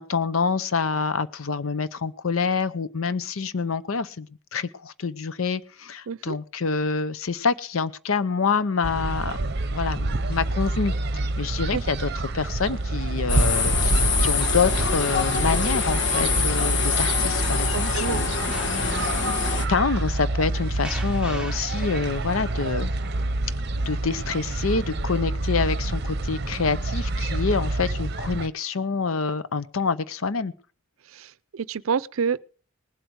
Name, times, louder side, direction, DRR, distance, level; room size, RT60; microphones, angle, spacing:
voice 1, 0.0-9.4 9.7-18.3 18.7-19.3 19.7-22.9 23.9-30.5, left 5 dB, 90° left, 0.7 m, -27 dB
sound 1, 8.8-28.5, right 2 dB, 55° right, 0.7 m, -27 dB
sound 2, 13.3-19.7, left 5 dB, 60° left, 1.3 m, -25 dB
voice 2, 17.7-18.2 31.1-32.4, right 6 dB, 90° right, 0.5 m, -28 dB
sound 3, 18.5-23.5, right 2 dB, 5° right, 1.0 m, -42 dB
19.5 x 8.0 x 4.7 m
head